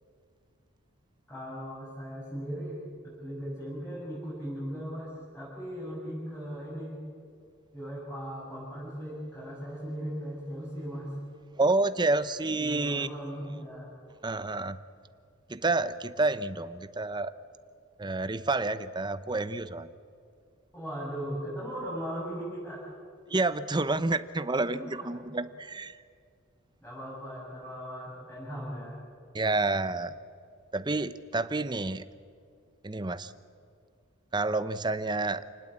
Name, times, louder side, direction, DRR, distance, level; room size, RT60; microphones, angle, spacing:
voice 1, 1.3-2.8 3.0-7.0 7.7-11.1 12.6-13.9 20.7-22.8 24.6-25.2 26.8-29.0, equal, 10° left, -8 dB, 8.0 m, -38 dB
voice 2, 11.6-13.1 14.2-14.8 15.5-17.3 18.0-19.9 23.3-26.0 29.3-30.1 30.7-32.0 32.8-33.3 34.3-35.4, right 2 dB, 20° right, 13 dB, 0.7 m, -29 dB
28.5 x 19.5 x 8.8 m, 2.3 s
head